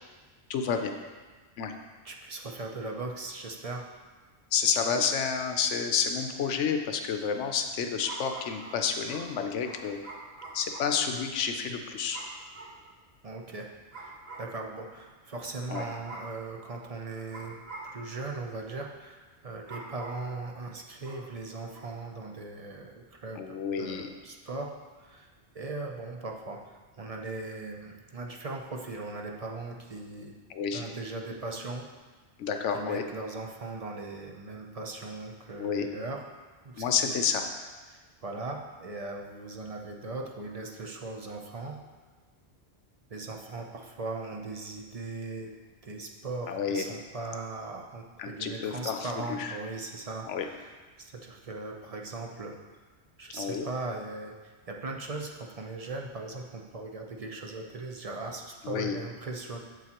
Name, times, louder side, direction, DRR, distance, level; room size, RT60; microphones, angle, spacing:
voice 1, 0.5-0.9 1.6-1.7 4.5-10.0 10.5-12.2 15.7-15.8 23.4-24.1 30.5-30.8 32.4-33.0 35.6-35.9 36.8-37.4 46.5-46.8 48.2-49.6 50.3-50.5 53.3-53.7 58.6-59.0, left 6 dB, 90° left, 5 dB, 1.0 m, -30 dB
voice 2, 2.0-3.9 13.2-13.7 14.0-17.5 17.8-30.3 30.7-31.9 32.7-36.2 36.6-37.1 37.9-41.8 43.1-45.5 45.8-52.6 53.2-54.3 54.7-59.6, right 3 dB, 40° right, 1 dB, 0.6 m, -39 dB
sound 1, 5.1-5.2 8.0-11.0 12.1-12.8 13.9-14.6 15.7-16.4 17.3-18.0 19.6-20.3 21.0-21.3 21.7-22.0, right 3 dB, 60° right, 1.3 m, -45 dB
7.8 x 7.6 x 2.9 m, 1.4 s
omnidirectional pair, 1.2 m